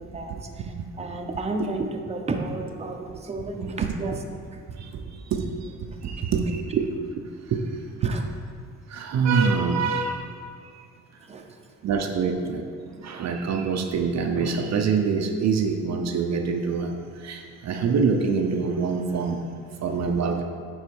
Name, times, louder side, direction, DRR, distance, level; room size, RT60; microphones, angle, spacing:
voice 1, 0.0-4.2 4.5-4.6 5.9-6.0 8.0-8.2 11.2-11.5, right 2 dB, 20° right, 2 dB, 0.8 m, -32 dB
voice 2, 4.8-5.7 6.0-6.9 7.2-7.3 7.5-7.6 8.0-8.1 8.9-10.3 10.8-10.9 11.8-12.6 13.0-20.4, right 5 dB, 60° right, 4 dB, 0.7 m, -25 dB
9.6 x 4.0 x 4.7 m, 2.1 s
cardioid pair, 90°, 30 cm